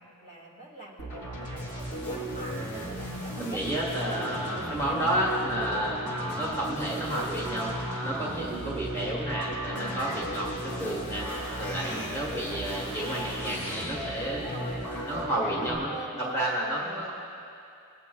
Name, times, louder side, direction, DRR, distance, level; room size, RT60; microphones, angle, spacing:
voice 1, 0.0-2.6 2.8-3.6 3.9-5.0 5.5-5.9 8.1-8.4 9.7-10.1 11.6-12.4 14.2-17.1, right 1 dB, 35° left, -3 dB, 1.6 m, -43 dB
sound 1, 1.0-15.8, equal, 90° left, 2.5 m, -35 dB
voice 2, 3.4-7.7 8.0-11.3 11.6-14.4 15.1-17.1, right 1 dB, 15° left, -4 dB, 1.3 m, -31 dB
22.5 x 8.3 x 2.3 m, 2.5 s
head